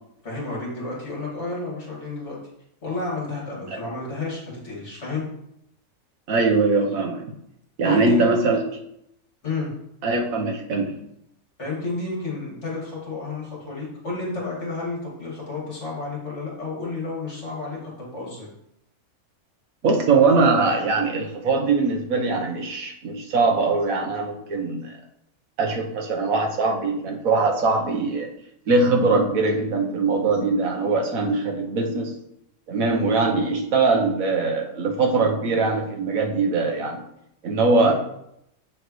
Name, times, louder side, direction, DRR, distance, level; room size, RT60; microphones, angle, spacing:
voice 1, 0.2-2.4 2.8-5.2 7.8-8.3 9.4-9.7 11.6-18.5 37.8-37.9, left 3 dB, 50° left, -4 dB, 2.6 m, -31 dB
voice 2, 6.3-7.3 7.8-8.6 10.0-10.9 19.8-24.9 25.6-28.3 28.7-32.1 32.7-37.0 37.4-37.9, right 3 dB, 70° right, 2 dB, 1.4 m, -21 dB
7.0 x 6.6 x 3.1 m, 0.78 s
omnidirectional pair, 1.5 m